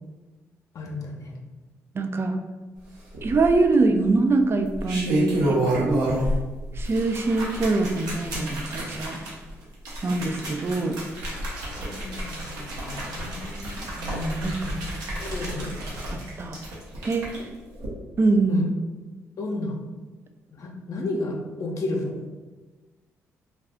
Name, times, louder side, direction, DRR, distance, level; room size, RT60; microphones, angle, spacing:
voice 1, 0.7-1.4 11.8-13.8 15.2-15.7 18.5-18.6 19.4-19.7 20.5-22.2, left 2 dB, 60° left, 0 dB, 0.5 m, -32 dB
voice 2, 1.9-2.4 3.2-6.0 6.7-9.2 10.0-11.0 14.0-14.9 16.1-16.6 17.0-17.4 18.2-18.6, right 3 dB, 40° right, 7 dB, 0.4 m, -24 dB
sound 1, 3.1-3.8 4.6-6.4 6.7-17.4 17.7-17.9, right 1 dB, 85° right, 0.7 m, -30 dB
2.4 x 2.3 x 3.5 m, 1.3 s
supercardioid pair, 60°, 6 cm